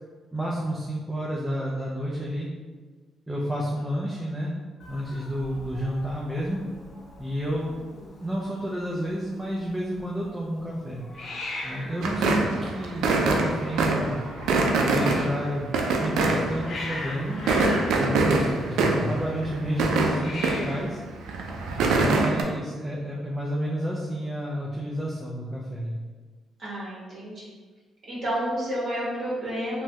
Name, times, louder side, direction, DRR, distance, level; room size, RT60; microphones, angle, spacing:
voice 1, 0.3-2.5 3.3-4.5 4.9-6.6 7.2-7.7 8.2-11.0 11.6-14.2 14.9-15.6 16.0-17.5 17.9-21.0 21.8-26.0, equal, 10° right, -4 dB, 0.5 m, -30 dB
Hiss, 4.8-22.1, left 2 dB, 45° left, 0.8 m, -41 dB
sound 1, 12.0-17.0 17.3-20.9 21.2-22.4, right 3 dB, 85° right, 0.3 m, -24 dB
voice 2, 26.6-27.5 28.1-29.8, equal, 55° right, -8 dB, 1.4 m, -30 dB
3.0 x 2.2 x 2.8 m, 1.4 s
cardioid pair, 90°, 0 cm